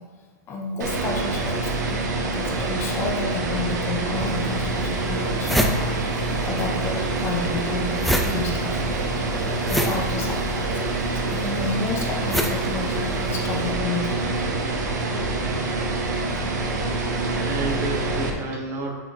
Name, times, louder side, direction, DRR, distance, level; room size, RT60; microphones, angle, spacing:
voice 1, 0.5-6.2 6.5-10.7 11.0-14.5 15.1-15.2 16.3-16.4 16.7-16.8, left 3 dB, 25° left, 0 dB, 0.8 m, -31 dB
sound 1, 0.8-18.3, right 2 dB, 85° right, 1.0 m, -26 dB
sound 2, 4.2-4.3 4.8-4.9 5.1-6.7 6.9-13.5, equal, ahead, 0.4 m, -27 dB
voice 2, 17.2-18.9, right 2 dB, 30° right, 0 dB, 1.1 m, -31 dB
5.9 x 4.8 x 4.2 m, 1.3 s
supercardioid pair, 140°, 9 cm